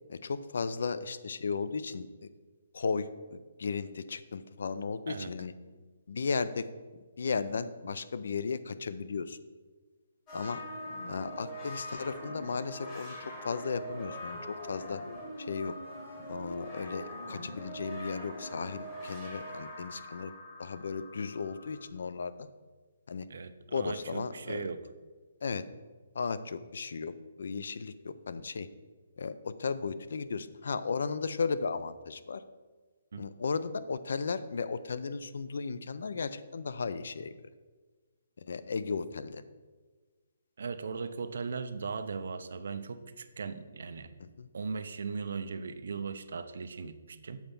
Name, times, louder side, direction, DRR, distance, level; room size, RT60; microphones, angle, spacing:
voice 1, 0.1-2.3 2.7-5.5 6.1-6.7 7.2-9.4 10.3-10.6 11.1-13.1 13.4-15.0 15.4-15.7 16.3-20.3 20.6-22.5 23.1-23.3 23.7-24.7 25.4-25.6 26.2-27.1 27.4-28.7 29.2-32.4 33.2-37.3 38.4-39.4 44.2-44.5, left 5 dB, 55° left, 14 dB, 0.4 m, -35 dB
sound 1, 10.3-21.9, equal, 15° left, 1.0 m, -43 dB
voice 2, 23.3-24.8 33.1-33.2 40.6-44.1 44.5-47.4, right 5 dB, 55° right, 11 dB, 0.5 m, -38 dB
7.1 x 4.4 x 5.3 m, 1.4 s
hypercardioid pair, 180°, 0 cm